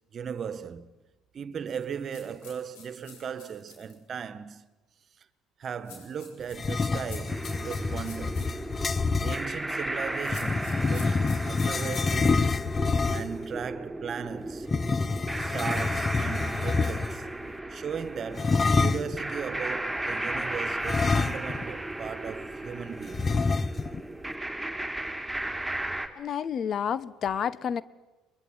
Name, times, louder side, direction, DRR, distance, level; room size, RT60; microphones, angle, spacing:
voice 1, 0.1-0.9 1.3-4.6 5.2-5.3 5.6-8.6 9.2-12.6 13.1-14.7 15.3-17.4 17.7-23.3, right 7 dB, 45° right, 1.6 m, -37 dB
sound 1, 2.1-4.0 5.9-8.5 10.1-12.6, left 6 dB, 75° left, 7.8 m, -48 dB
sound 2, 6.5-9.4 10.3-13.4 14.6-17.3 18.3-19.2 20.8-21.7 22.0-22.1 23.1-24.0, left 4 dB, 30° left, 0.9 m, -27 dB
sound 3, 7.3-26.1, right 1 dB, 10° right, 3.3 m, -35 dB
voice 2, 26.2-27.8, left 8 dB, 50° left, 1.2 m, -30 dB
23.0 x 22.0 x 9.6 m
hypercardioid pair, 70°, 0 cm